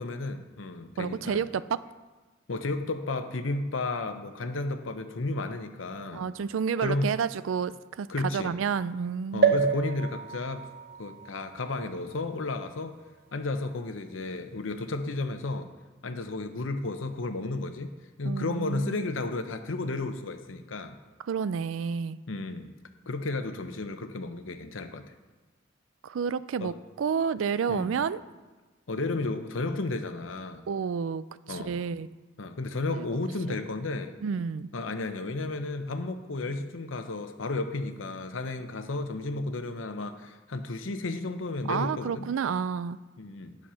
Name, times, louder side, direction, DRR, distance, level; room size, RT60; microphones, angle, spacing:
voice 1, 0.0-1.5 2.5-6.2 6.8-7.2 8.1-8.5 9.3-10.7 11.0-12.9 13.3-15.7 16.0-17.9 18.2-21.0 22.3-22.7 23.1-25.0 26.6-26.7 27.7-27.9 28.9-30.6 31.5-31.8 32.4-34.1 34.7-42.3 43.2-43.6, left 2 dB, 85° left, 8 dB, 0.8 m, -33 dB
voice 2, 1.0-1.8 6.1-9.6 18.2-19.0 21.3-22.2 26.0-28.2 30.7-32.1 33.0-33.1 34.2-34.7 41.7-43.0, right 6 dB, 85° right, 16 dB, 0.4 m, -30 dB
sound 1, 9.4-13.1 13.7-13.8 14.0-14.1, right 5 dB, 55° right, 0.9 m, -29 dB
10.5 x 6.4 x 5.6 m, 1.3 s
head